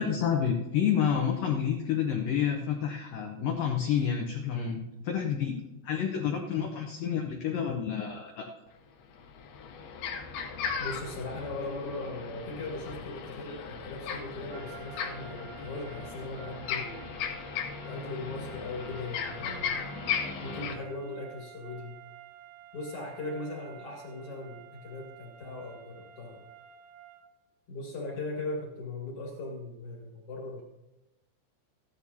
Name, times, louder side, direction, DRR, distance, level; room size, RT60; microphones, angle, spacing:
voice 1, 0.0-5.5 5.8-8.5, left 8 dB, 90° left, 2 dB, 1.9 m, -29 dB
sound 1, 8.7-8.8 9.1-20.7, left 6 dB, 75° left, 2.5 m, -37 dB
voice 2, 10.8-17.1 17.8-19.8 20.4-22.0 22.7-26.4 27.7-30.6, left 2 dB, 50° left, -1 dB, 1.9 m, -39 dB
sound 2, 14.5-27.4, right 9 dB, 80° right, 2.6 m, -51 dB
15.0 x 11.5 x 2.8 m, 0.98 s
omnidirectional pair, 5.3 m